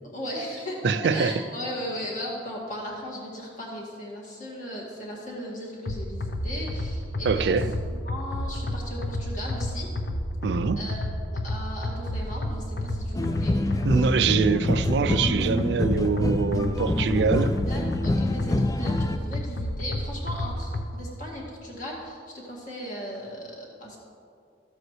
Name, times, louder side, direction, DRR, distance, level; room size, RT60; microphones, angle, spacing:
voice 1, 0.1-7.6 8.0-9.9 10.8-13.6 17.6-24.0, equal, 45° left, 2.0 m, -37 dB
voice 2, 0.8-1.4 7.2-7.8 10.4-10.9 13.8-17.6, right 5 dB, 65° right, 0.4 m, -24 dB
sound 1, 5.9-20.9, left 1 dB, 70° left, 0.7 m, -31 dB
sound 2, 13.1-19.2, left 1 dB, 20° left, 0.3 m, -27 dB
13.5 x 7.8 x 3.2 m
head